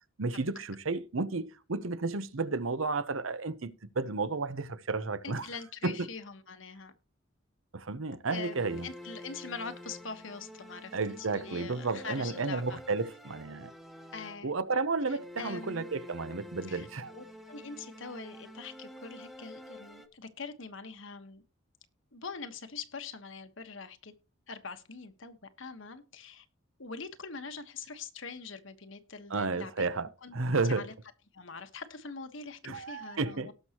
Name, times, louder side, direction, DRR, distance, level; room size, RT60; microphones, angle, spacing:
voice 1, 0.2-5.5 5.8-6.0 7.7-8.9 10.9-13.7 14.4-17.1 29.3-30.9 32.6-33.5, right 3 dB, 80° right, 0.9 m, -32 dB
voice 2, 5.2-6.9 8.2-12.8 14.1-14.5 15.1-15.9 16.7-21.4 22.1-24.1 24.5-26.4 26.8-29.9 30.2-30.9 31.3-33.5, left 5 dB, 70° left, 1.4 m, -43 dB
sound 1, 8.3-14.7 15.1-20.1, equal, ahead, 1.1 m, -48 dB
18.5 x 6.3 x 3.0 m
head